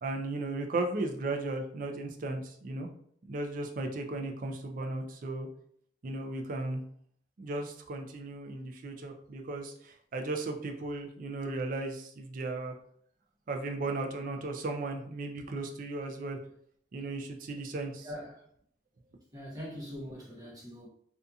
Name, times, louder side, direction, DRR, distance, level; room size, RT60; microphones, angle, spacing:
voice 1, 0.0-2.9 3.3-5.5 6.0-6.8 7.4-12.8 13.5-16.4 16.9-18.1, right 2 dB, 45° right, 4 dB, 0.4 m, -36 dB
voice 2, 18.0-18.5 19.3-20.9, equal, 20° right, -5 dB, 0.9 m, -42 dB
2.6 x 2.4 x 2.3 m, 0.64 s
head